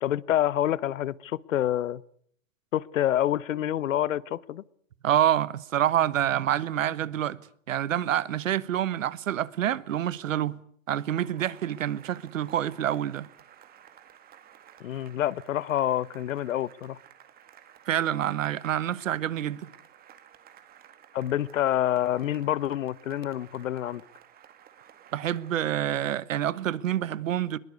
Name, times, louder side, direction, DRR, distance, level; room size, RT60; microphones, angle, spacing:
voice 1, 0.0-2.0 2.7-4.6 14.8-17.0 21.1-24.0, left 12 dB, 85° left, 0.9 m, -27 dB
voice 2, 5.0-7.4 7.7-10.6 10.9-13.3 17.9-19.7 25.1-27.6, right 11 dB, 85° right, 1.2 m, -27 dB
Cheering / Applause, 11.0-25.8, right 10 dB, 25° right, 2.1 m, -54 dB
21.5 x 20.5 x 8.3 m
hypercardioid pair, 135°, 38 cm